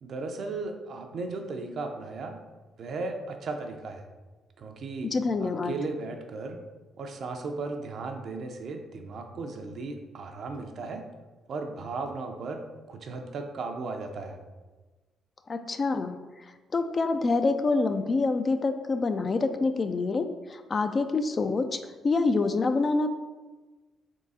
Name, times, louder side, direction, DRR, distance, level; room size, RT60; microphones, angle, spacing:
voice 1, 0.0-2.4 2.8-4.1 4.6-5.1 5.4-6.6 7.0-11.0 11.5-12.6 12.9-14.4, right 3 dB, 60° right, 4 dB, 0.5 m, -36 dB
voice 2, 5.0-5.7 15.5-23.1, left 3 dB, 35° left, 9 dB, 0.3 m, -27 dB
3.6 x 3.2 x 4.1 m, 1.2 s
cardioid pair, 90°, 0 cm